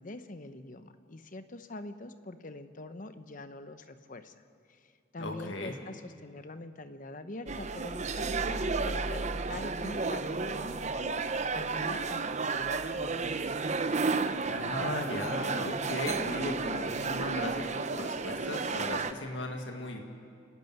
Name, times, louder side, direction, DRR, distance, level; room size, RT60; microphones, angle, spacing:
voice 1, 0.0-4.3 4.7-11.2 11.5-13.5, left 2 dB, 45° left, 10 dB, 0.9 m, -44 dB
voice 2, 5.2-5.7 14.5-20.0, left 1 dB, 70° left, 2 dB, 2.0 m, -37 dB
sound 1, 7.5-19.1, right 4 dB, 35° right, 0.7 m, -32 dB
27.0 x 12.0 x 9.3 m, 2.3 s
head